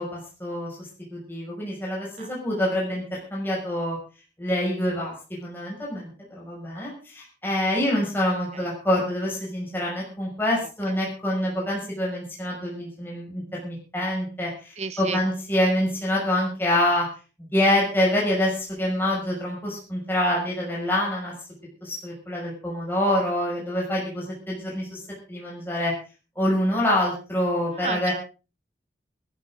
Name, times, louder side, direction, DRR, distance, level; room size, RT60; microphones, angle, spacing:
voice 1, 0.0-4.0 4.4-5.1 5.4-17.1 17.5-21.3 21.8-25.0 25.3-25.9 26.4-28.1, left 1 dB, 10° left, -4 dB, 6.2 m, -26 dB
voice 2, 2.2-2.6 8.5-8.7 14.8-15.2 27.7-28.1, right 5 dB, 35° right, 11 dB, 0.8 m, -33 dB
21.0 x 12.5 x 3.8 m, 0.34 s
head